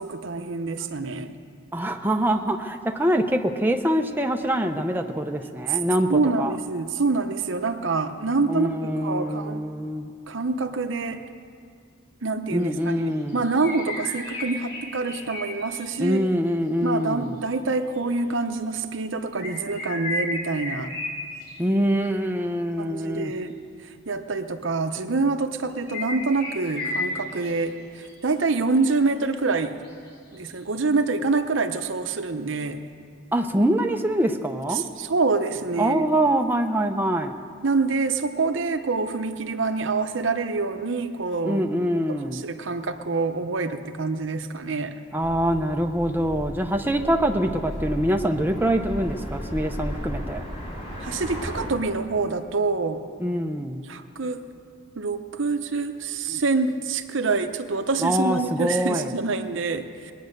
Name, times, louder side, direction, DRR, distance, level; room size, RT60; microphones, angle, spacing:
voice 1, 0.0-1.3 6.1-8.7 9.0-9.6 10.3-11.2 12.2-16.2 16.8-20.9 22.8-23.6 24.1-29.8 30.3-32.8 34.7-36.0 37.6-41.6 42.1-44.9 51.0-53.0 53.9-54.5 55.0-60.1, right 3 dB, 70° right, 9 dB, 0.8 m, -26 dB
voice 2, 1.7-6.5 8.5-10.1 12.5-13.4 16.0-17.3 21.6-23.3 33.3-34.8 35.8-37.4 41.5-42.5 45.1-50.4 53.2-53.8 58.0-59.1, equal, 10° right, 4 dB, 0.6 m, -24 dB
sound 1, 12.8-12.9 13.3-16.1 18.0-18.1 19.3-21.6 25.7-27.5 27.9-28.1 28.5-28.6 28.8-28.9 29.2-29.3 29.8-30.6, left 2 dB, 55° left, 3.8 m, -33 dB
sound 2, 45.2-51.7, equal, 35° left, 2.8 m, -35 dB
21.5 x 9.3 x 6.6 m, 2.3 s
head